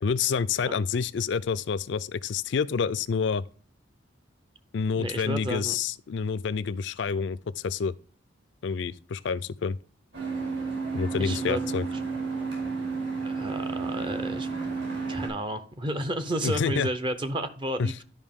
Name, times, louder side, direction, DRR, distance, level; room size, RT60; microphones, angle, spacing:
voice 1, 0.0-3.4 4.7-7.9 8.6-9.8 10.9-11.8 16.4-16.9 17.8-17.9, left 5 dB, 65° left, 0.4 m, -28 dB
voice 2, 4.9-5.8 11.2-11.6 11.9-12.0 13.2-14.5 15.1-18.0, right 1 dB, 25° right, 0.5 m, -32 dB
sound 1, 10.1-15.3, right 4 dB, 65° right, 5.0 m, -31 dB
11.5 x 5.3 x 3.6 m
head